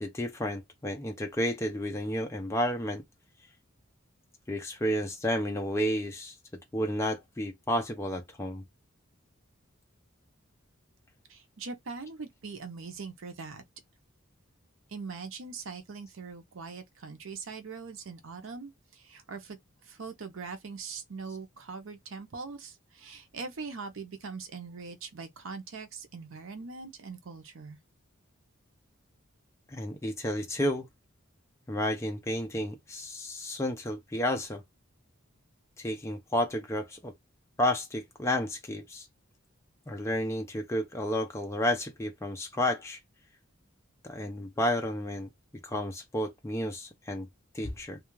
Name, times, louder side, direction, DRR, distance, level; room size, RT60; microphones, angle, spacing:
voice 1, 0.0-3.0 4.5-6.3 6.7-8.6 29.7-30.9 31.7-34.6 35.8-37.1 37.6-39.1 39.9-43.0 44.0-45.3 45.6-47.3 47.5-48.0, left 1 dB, 15° left, 0.4 m, -31 dB
voice 2, 11.3-13.6 14.9-27.8, right 4 dB, 70° right, 0.6 m, -42 dB
2.3 x 2.2 x 3.0 m
head